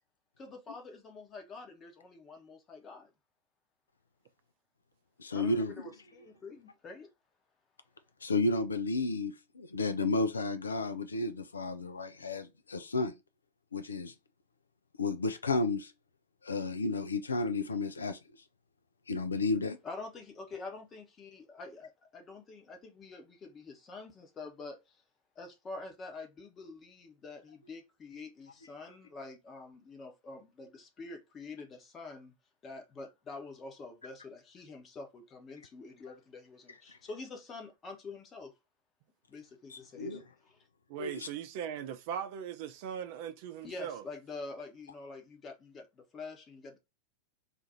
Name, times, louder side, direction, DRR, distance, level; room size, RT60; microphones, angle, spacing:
voice 1, 0.4-3.1 5.3-7.1 19.8-25.0 25.3-32.3 32.6-38.6 39.3-40.7 43.6-46.8, left 3 dB, 25° left, 1.0 m, -46 dB
voice 2, 5.2-5.8 8.2-13.1 13.7-14.1 15.0-15.9 16.4-18.2 19.1-19.8 39.7-40.2 41.0-41.3, left 3 dB, 75° left, 0.4 m, -32 dB
voice 3, 40.9-44.0, right 9 dB, 50° right, 0.6 m, -39 dB
2.6 x 2.5 x 4.1 m
figure-of-eight pair, 90°, 0 cm